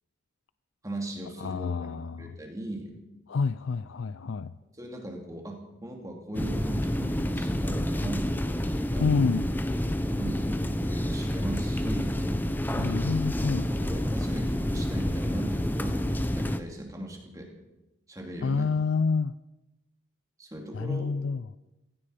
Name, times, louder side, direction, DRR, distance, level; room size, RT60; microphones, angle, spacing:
voice 1, 0.8-1.8 2.2-2.9 4.7-8.3 8.9-9.0 10.1-12.2 12.7-13.0 13.7-17.5 18.1-18.7 20.4-21.1, right 1 dB, 15° right, 2.6 m, -39 dB
voice 2, 1.4-2.3 3.3-4.5 9.0-9.5 12.8-13.7 18.4-19.4 20.7-21.4, left 4 dB, 80° left, 0.4 m, -28 dB
sound 1, 6.3-16.6, equal, 10° left, 0.7 m, -28 dB
16.5 x 16.0 x 5.0 m
head